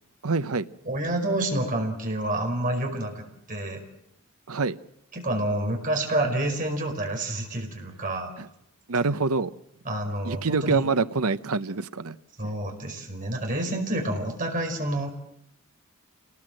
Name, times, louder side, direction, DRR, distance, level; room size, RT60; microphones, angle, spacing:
voice 1, 0.2-0.6 4.5-4.8 8.4-8.5 8.9-9.5 10.2-12.2 12.4-12.5, right 4 dB, 75° right, 13 dB, 0.9 m, -26 dB
voice 2, 0.8-3.8 5.1-8.3 9.8-10.9 12.4-15.1, right 1 dB, 35° right, 3 dB, 5.1 m, -28 dB
27.0 x 19.5 x 7.8 m, 0.80 s
head